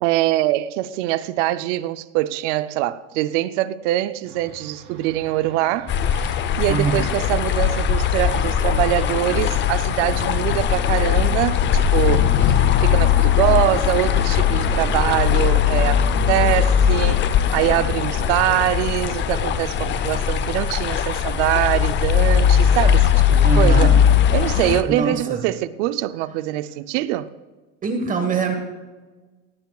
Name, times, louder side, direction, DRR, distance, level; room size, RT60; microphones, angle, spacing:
voice 1, 0.0-12.6 12.8-17.2 17.5-23.9 24.3-27.3, right 15 dB, 75° right, 0.6 m, -23 dB
sound 1, 4.2-10.5, right 2 dB, 45° right, 3.8 m, -44 dB
sound 2, 5.9-24.8, left 8 dB, 30° left, 0.6 m, -19 dB
voice 2, 6.7-7.0 23.4-24.0 24.9-25.4 27.8-28.5, right 4 dB, 20° right, 1.4 m, -23 dB
17.5 x 16.5 x 2.4 m
cardioid pair, 150°, 37 cm